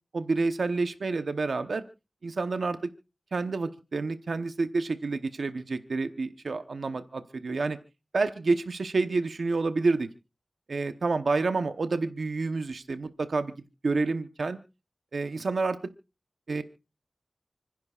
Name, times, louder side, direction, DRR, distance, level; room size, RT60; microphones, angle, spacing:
voice 1, 0.1-1.8 2.2-2.9 3.3-7.8 8.1-10.1 10.7-13.5 13.8-14.6 15.1-15.8 16.5-16.6, right 3 dB, 85° right, 9 dB, 0.9 m, -28 dB
29.5 x 10.5 x 2.4 m, 0.31 s
wide cardioid pair, 60°, 0 cm